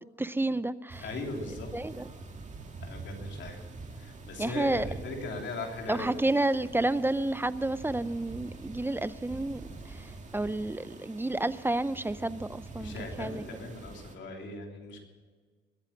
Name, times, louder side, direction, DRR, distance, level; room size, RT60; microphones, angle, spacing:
voice 1, 0.0-1.0 1.7-2.0 4.4-4.9 5.9-13.4, right 2 dB, 10° right, 16 dB, 0.5 m, -30 dB
sound 1, 0.9-14.2, right 3 dB, 35° right, 2.1 m, -45 dB
voice 2, 1.0-1.7 2.8-3.6 3.9-6.2 12.7-15.0, left 2 dB, 65° left, 2 dB, 3.2 m, -39 dB
21.0 x 8.9 x 7.3 m, 1.6 s
cardioid pair, 90°, 20 cm